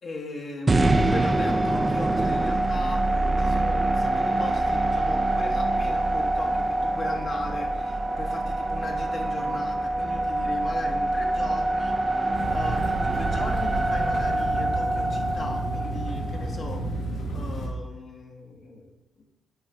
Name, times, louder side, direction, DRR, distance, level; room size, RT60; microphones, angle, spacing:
voice 1, 0.0-16.8 17.3-18.9, left 2 dB, 50° left, 1 dB, 1.1 m, -38 dB
sound 1, 0.7-16.8, right 2 dB, 25° right, 0.5 m, -25 dB
sound 2, 12.3-17.7, right 1 dB, 75° left, 1.3 m, -31 dB
8.0 x 3.2 x 4.9 m, 0.91 s
cardioid pair, 90°, 0 cm